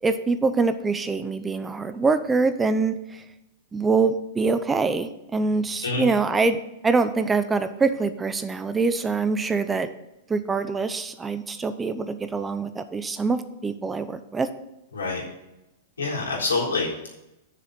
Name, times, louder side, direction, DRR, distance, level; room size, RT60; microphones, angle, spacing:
voice 1, 0.0-3.2 3.7-9.9 10.3-14.5, right 4 dB, 15° right, 11 dB, 0.7 m, -24 dB
voice 2, 16.0-17.1, left 3 dB, 90° left, -4 dB, 3.8 m, -26 dB
7.2 x 6.8 x 7.9 m, 0.93 s
hypercardioid pair, 110°, 0 cm